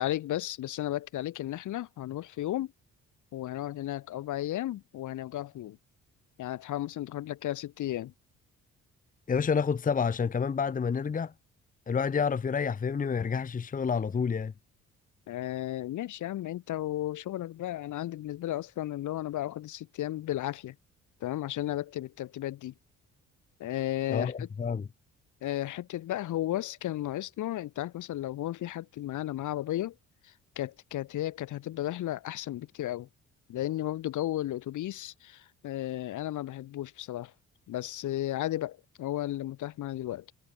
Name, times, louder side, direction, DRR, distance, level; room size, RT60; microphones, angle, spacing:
voice 1, 0.0-2.7 3.3-5.8 6.4-8.1 15.3-20.8 21.2-22.7 23.6-24.5 25.4-29.9 30.2-33.1 33.5-37.3 37.7-40.3, left 14 dB, 80° left, 2.8 m, -34 dB
voice 2, 9.3-11.3 11.9-14.5 24.1-24.9, left 6 dB, 25° left, 0.8 m, -29 dB
cardioid pair, 90°, 30 cm